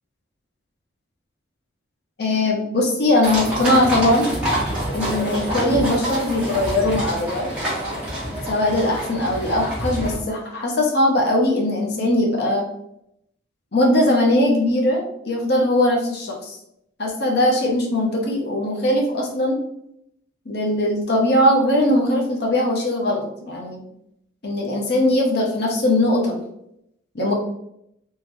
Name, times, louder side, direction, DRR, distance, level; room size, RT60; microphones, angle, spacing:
voice 1, 2.2-4.3 4.9-7.5 8.5-12.7 13.7-16.6 17.0-19.6 20.5-23.8 24.4-26.4 27.1-27.3, left 1 dB, 55° left, -1 dB, 0.8 m, -20 dB
sound 1, 3.2-10.2, equal, 5° right, 1.3 m, -27 dB
3.7 x 3.1 x 3.0 m, 0.77 s
head